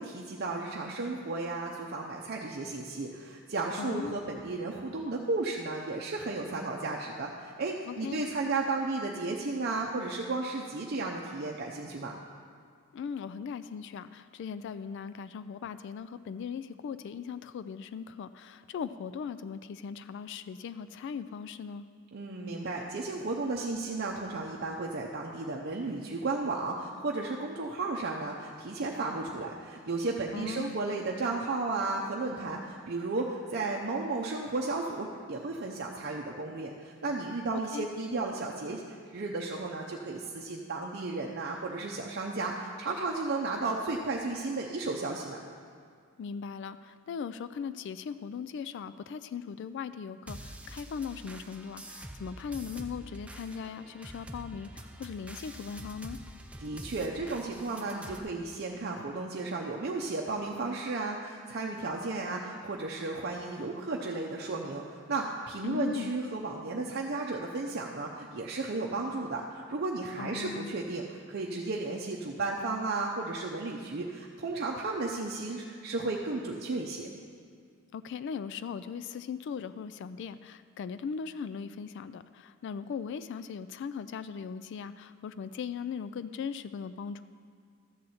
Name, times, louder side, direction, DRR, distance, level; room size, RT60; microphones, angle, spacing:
voice 1, 0.0-12.1 22.1-45.4 56.6-77.1, right 3 dB, 50° right, -1 dB, 0.6 m, -34 dB
voice 2, 3.8-4.2 7.8-8.3 12.9-21.8 30.3-30.8 37.5-37.9 46.2-56.2 65.6-66.1 70.2-70.7 77.9-87.2, left 6 dB, 60° left, 13 dB, 0.3 m, -39 dB
sound 1, 50.3-58.2, right 1 dB, 5° right, 0.6 m, -46 dB
12.5 x 4.2 x 7.8 m, 2.1 s
head